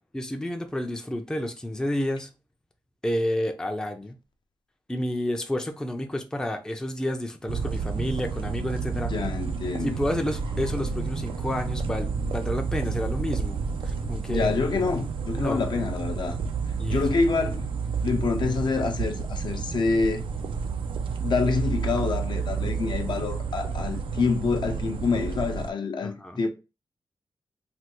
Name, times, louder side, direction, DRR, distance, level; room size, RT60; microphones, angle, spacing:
voice 1, 0.1-2.3 3.0-4.2 4.9-9.1 9.8-13.6 13.8-14.5 15.3-15.6 16.8-17.1 26.0-26.4, left 1 dB, 10° left, 0.4 m, -30 dB
sound 1, 7.5-25.7, right 5 dB, 80° right, 0.3 m, -30 dB
voice 2, 9.1-10.0 14.3-16.4 16.9-17.7 18.0-20.2 21.2-26.5, left 4 dB, 60° left, 0.5 m, -27 dB
sound 2, 10.3-16.2, right 1 dB, 60° right, 0.7 m, -39 dB
3.3 x 2.3 x 2.9 m
wide cardioid pair, 120°, 9 cm